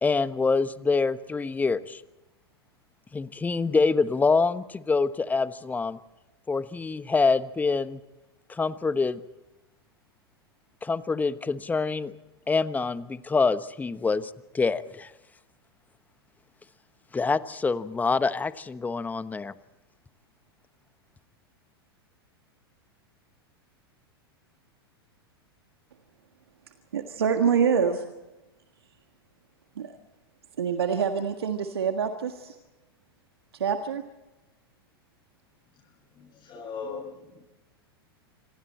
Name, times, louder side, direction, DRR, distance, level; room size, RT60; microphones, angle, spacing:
voice 1, 0.0-2.0 3.1-6.0 6.5-8.0 8.5-9.2 10.8-12.1 12.5-15.1 17.1-19.5, left 4 dB, 10° left, 13 dB, 1.1 m, -26 dB
voice 2, 26.9-28.0 29.8-30.0 30.6-32.5 33.5-34.0, right 7 dB, 80° right, 6 dB, 1.7 m, -26 dB
voice 3, 36.1-37.4, left 5 dB, 35° left, -2 dB, 6.7 m, -39 dB
27.5 x 26.0 x 4.4 m, 1.0 s
hypercardioid pair, 95°, 13 cm